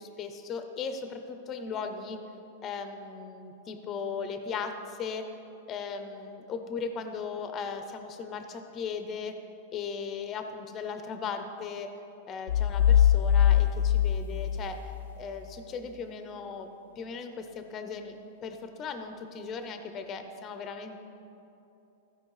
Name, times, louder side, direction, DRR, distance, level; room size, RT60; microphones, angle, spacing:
voice 1, 0.0-2.2 2.6-5.2 5.7-9.3 9.7-11.9 12.3-14.8 15.2-16.7 17.0-18.2 18.4-21.0, left 5 dB, 25° left, 7 dB, 0.7 m, -37 dB
sound 1, 12.5-15.2, left 10 dB, 80° left, 0.5 m, -23 dB
15.0 x 5.3 x 4.8 m, 2.9 s
supercardioid pair, 150°, 0 cm